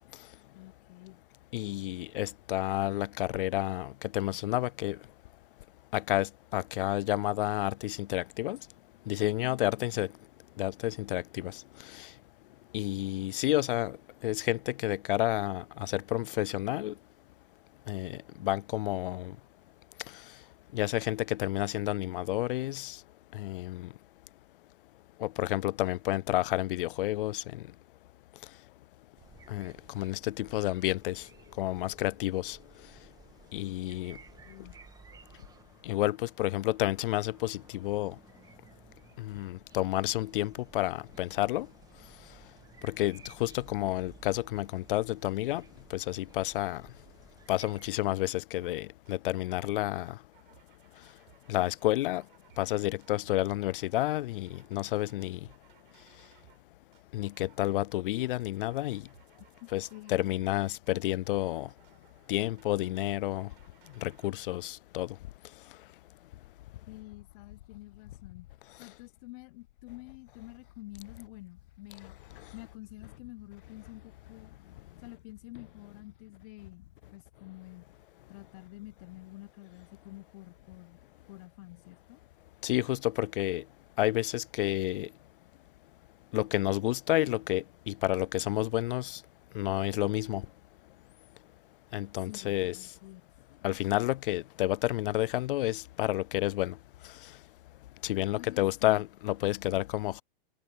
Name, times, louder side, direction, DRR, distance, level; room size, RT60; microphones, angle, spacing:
voice 1, 0.5-1.2 9.2-10.1 34.5-34.8 59.6-60.3 66.9-68.5 68.8-72.1 72.5-74.5 75.0-77.9 78.3-81.0 81.3-82.2 92.2-93.3 98.3-99.0 99.4-99.7, left 20 dB, 40° left, 0.8 m, -48 dB
voice 2, 1.5-5.0 5.9-8.6 9.1-10.1 10.6-12.1 12.7-14.0 14.2-16.9 17.9-19.4 20.1-20.2 20.7-23.0 23.3-23.9 25.2-27.7 29.5-31.3 31.6-32.6 33.5-34.2 35.8-38.2 39.2-41.7 42.8-45.7 45.9-46.8 47.5-50.2 51.5-52.2 52.6-55.4 57.1-59.1 59.7-61.7 62.3-63.5 64.0-65.2 82.6-83.6 84.0-85.1 86.3-89.2 89.5-90.5 91.9-92.9 93.6-96.8 97.0-97.1 98.0-100.2, left 16 dB, 65° left, 0.5 m, -30 dB
sound 1, 29.2-47.9, right 6 dB, 10° right, 1.7 m, -56 dB
sound 2, 48.6-48.8 49.1-49.8 50.0-56.6 56.9-57.7 57.9-64.3, right 15 dB, 60° right, 5.1 m, -62 dB
hypercardioid pair, 140°, 29 cm